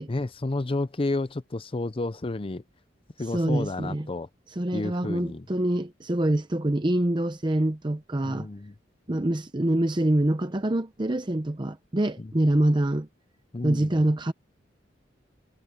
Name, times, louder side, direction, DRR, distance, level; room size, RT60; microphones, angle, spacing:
voice 1, 0.1-2.6 3.2-4.3 4.7-5.5 8.2-8.7 12.2-12.3 13.5-13.9, left 2 dB, 30° left, 0.6 m, -31 dB
voice 2, 3.3-4.1 4.6-8.5 9.1-13.1 13.6-14.3, right 1 dB, 25° right, 0.8 m, -25 dB
head